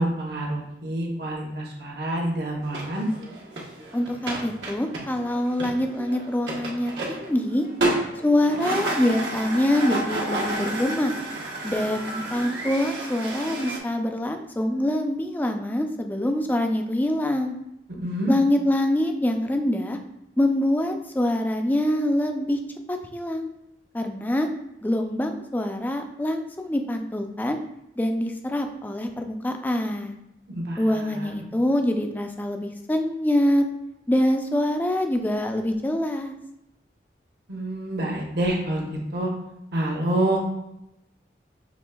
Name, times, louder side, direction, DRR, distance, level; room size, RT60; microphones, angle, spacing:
voice 1, 0.0-3.1 18.0-18.3 30.5-30.8 31.2-31.3 37.5-38.9 39.1-39.3 39.7-40.4, right 1 dB, 60° right, -1 dB, 0.9 m, -27 dB
sound 1, 2.6-13.8, right 1 dB, 90° right, 1.0 m, -31 dB
voice 2, 3.9-7.7 8.2-11.1 11.6-17.5 18.3-20.0 20.4-22.6 22.9-23.5 23.9-24.5 24.8-27.6 28.0-30.2 30.8-33.7 34.1-36.3, left 1 dB, 10° left, 5 dB, 0.3 m, -25 dB
6.1 x 3.2 x 2.2 m, 0.86 s
head